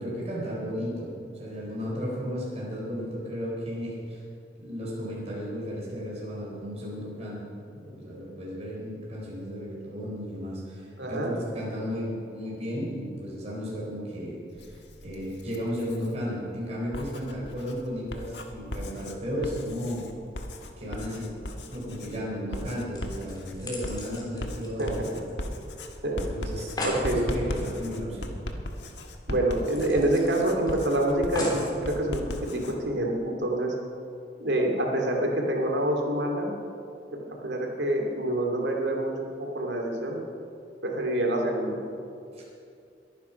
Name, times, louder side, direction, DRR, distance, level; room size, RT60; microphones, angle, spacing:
voice 1, 0.0-4.2 4.6-7.5 7.7-14.8 15.0-20.1 20.8-21.4 21.7-25.2 26.2-28.3 42.3-42.4, equal, 40° right, -5 dB, 4.1 m, -34 dB
voice 2, 11.0-11.3 24.8-24.9 26.0-26.2 26.8-27.2 29.3-33.7 34.4-36.5 37.1-39.1 39.4-40.2 40.8-41.8, right 1 dB, 80° right, 0 dB, 2.7 m, -27 dB
Writing, 14.5-16.1 16.8-32.8, left 1 dB, 80° left, 1.5 m, -38 dB
sound 1, 22.9-25.6 25.9-26.0 26.3-26.4 26.6-27.1 28.6-28.7 29.0-29.1 29.7-30.7 31.3-31.8 32.5-32.6, left 1 dB, 25° left, 3.1 m, -36 dB
22.0 x 9.5 x 5.8 m, 2.5 s
head